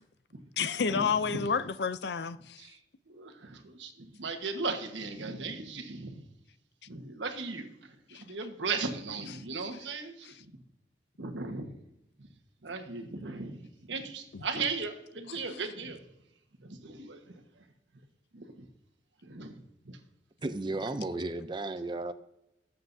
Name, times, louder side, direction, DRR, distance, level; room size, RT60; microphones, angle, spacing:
voice 1, 0.6-2.6 8.1-8.2 14.3-14.4, left 6 dB, 65° left, 0.5 m, -30 dB
voice 2, 3.1-6.2 6.9-10.5 11.2-11.7 12.6-16.0 16.6-17.4 18.3-18.7 19.2-19.6 19.8-20.0, right 4 dB, 85° right, 1.4 m, -37 dB
voice 3, 20.4-22.1, right 2 dB, 25° right, 0.5 m, -34 dB
19.5 x 7.7 x 2.7 m
head